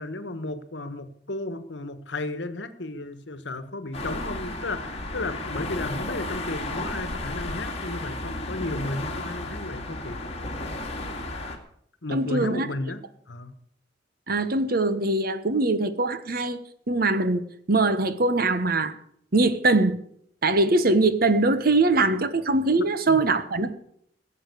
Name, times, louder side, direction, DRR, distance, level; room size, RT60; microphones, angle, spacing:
voice 1, 0.0-10.2 12.0-13.5 22.8-23.2, left 2 dB, 75° left, 12 dB, 1.3 m, -34 dB
sound 1, 3.9-11.6, left 2 dB, 35° left, 2.3 m, -33 dB
voice 2, 12.1-12.7 14.3-16.6 16.9-18.9 19.3-20.0 20.4-23.8, right 2 dB, 55° right, 11 dB, 1.2 m, -22 dB
16.5 x 7.4 x 8.4 m, 0.69 s
head